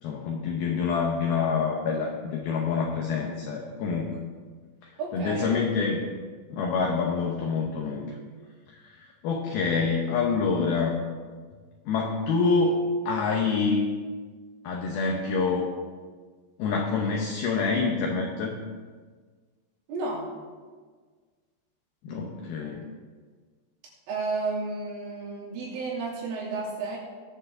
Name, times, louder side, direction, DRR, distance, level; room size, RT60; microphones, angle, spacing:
voice 1, 0.0-4.2 5.1-6.0 6.5-8.1 8.7-10.9 11.9-13.9 14.6-15.7 16.6-18.6 22.0-22.9, left 4 dB, 80° left, 0 dB, 2.2 m, -26 dB
voice 2, 5.0-5.6 19.9-20.3 24.1-27.0, right 3 dB, 80° right, -5 dB, 5.5 m, -32 dB
20.5 x 7.2 x 3.8 m, 1.5 s
omnidirectional pair, 5.6 m